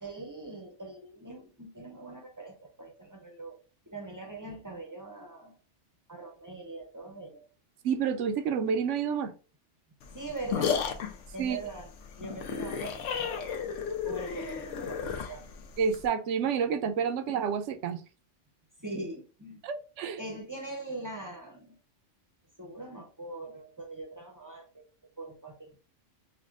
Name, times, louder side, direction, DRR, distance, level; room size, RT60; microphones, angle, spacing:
voice 1, 0.0-3.6 3.9-5.6 6.1-7.5 10.1-10.9 11.3-11.9 12.2-15.5 18.8-19.6 20.2-21.7 22.6-24.8 25.2-25.8, right 2 dB, 20° right, 0.5 m, -42 dB
voice 2, 7.8-9.3 11.4-11.6 15.8-18.0 19.6-20.2, right 6 dB, 80° right, 0.9 m, -29 dB
sound 1, 10.0-16.1, left 7 dB, 90° left, 1.0 m, -33 dB
5.8 x 2.2 x 2.4 m
omnidirectional pair, 1.2 m